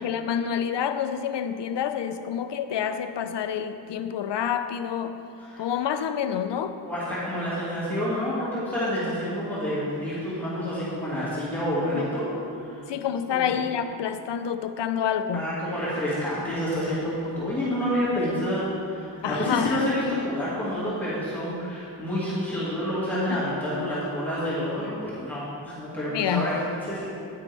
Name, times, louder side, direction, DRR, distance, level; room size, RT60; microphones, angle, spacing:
voice 1, 0.0-5.2 5.6-6.7 11.9-12.0 12.9-15.5 19.2-19.8 23.3-23.4 26.1-26.5, left 8 dB, 70° left, 9 dB, 0.6 m, -28 dB
voice 2, 5.4-5.7 6.8-12.3 12.5-12.8 13.3-13.5 15.3-27.1, equal, 5° left, -11 dB, 2.0 m, -28 dB
9.6 x 9.2 x 3.4 m, 2.6 s
wide cardioid pair, 165°, 43 cm